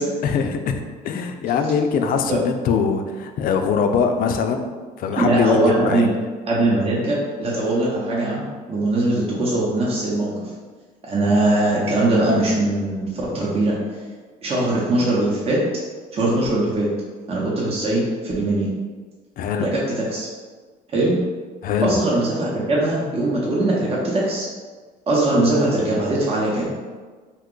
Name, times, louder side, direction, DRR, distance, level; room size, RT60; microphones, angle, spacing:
voice 1, 0.2-4.7 5.0-6.1 19.4-19.7 21.6-22.0, left 6 dB, 60° left, 6 dB, 0.4 m, -22 dB
voice 2, 5.2-6.1 6.5-10.4 11.1-13.1 13.3-13.7 14.4-15.6 16.1-16.9 17.3-18.7 19.6-19.8 20.1-20.3 20.9-21.2 21.8-24.5 25.1-26.7, right 2 dB, 35° right, -5 dB, 0.7 m, -21 dB
2.8 x 2.3 x 3.7 m, 1.4 s
cardioid pair, 110°, 17 cm